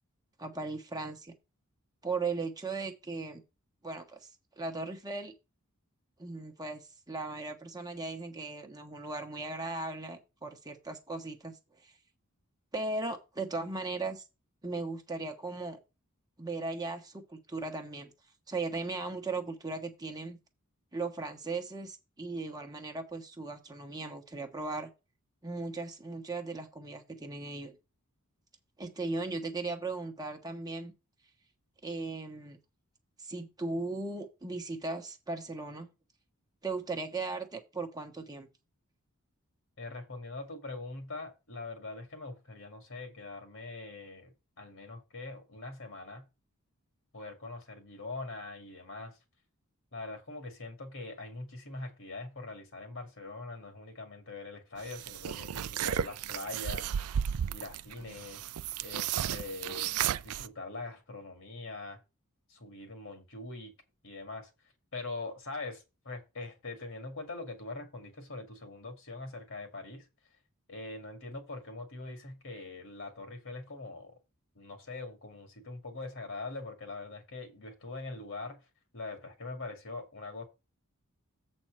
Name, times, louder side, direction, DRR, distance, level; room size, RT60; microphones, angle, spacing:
voice 1, 0.4-1.3 2.0-3.4 3.8-4.3 4.6-5.3 6.2-11.9 12.7-14.2 14.6-15.8 16.4-18.1 18.5-20.4 20.9-24.9 25.4-27.8 28.8-30.9 31.8-32.6 33.2-35.9 36.6-38.5, right 3 dB, 15° right, 1.1 m, -37 dB
voice 2, 39.8-46.3 47.1-49.2 49.9-56.9 57.5-58.4 58.8-59.9 60.2-62.0 62.5-63.7 64.0-64.5 64.9-70.1 70.7-74.2 74.5-78.6 78.9-80.4, left 3 dB, 60° left, 2.2 m, -43 dB
sound 1, 54.9-60.5, right 9 dB, 75° right, 0.4 m, -34 dB
7.9 x 4.3 x 6.2 m
head